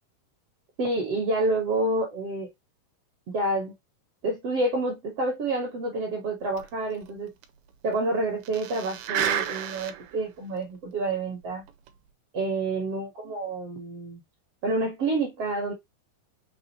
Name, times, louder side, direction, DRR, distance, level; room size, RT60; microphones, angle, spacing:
voice 1, 0.8-2.5 3.3-3.7 4.2-7.3 7.8-11.6 12.3-14.2 14.6-15.7, right 2 dB, 60° right, 1.7 m, -28 dB
sound 1, 6.6-6.7 7.0-7.1 7.4-7.5 8.4-10.2 10.6-10.7 11.7-11.9, right 10 dB, 85° right, 2.3 m, -30 dB
6.1 x 2.5 x 2.8 m
omnidirectional pair, 4.0 m